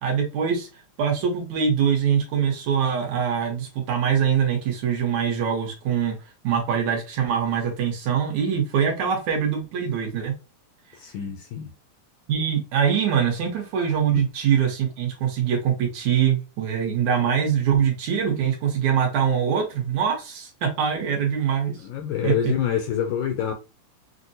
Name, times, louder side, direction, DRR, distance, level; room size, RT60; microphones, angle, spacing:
voice 1, 0.0-0.7 1.0-6.2 6.4-10.3 12.3-21.7 22.2-22.3, right 7 dB, 70° right, 2.0 m, -23 dB
voice 2, 10.9-11.7 14.1-14.2 21.8-23.5, left 9 dB, 80° left, 1.8 m, -26 dB
6.1 x 2.1 x 2.6 m
omnidirectional pair, 3.9 m